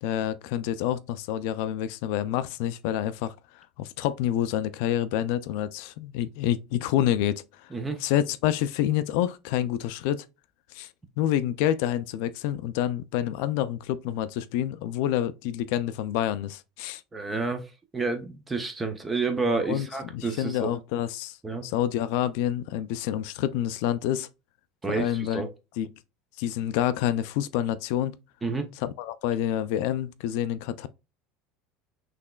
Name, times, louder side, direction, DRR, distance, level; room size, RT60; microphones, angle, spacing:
voice 1, 0.0-7.7 8.0-10.3 10.7-10.9 11.2-17.0 19.7-19.9 20.1-21.4 21.6-24.3 24.9-25.5 25.8-25.9 26.4-28.2 28.8-30.9, left 11 dB, 60° left, 0.3 m, -28 dB
voice 2, 17.1-20.7 21.4-21.6 24.8-25.5 28.4-28.7, right 3 dB, 10° right, 0.4 m, -29 dB
5.9 x 3.2 x 2.2 m
cardioid pair, 175°, 0 cm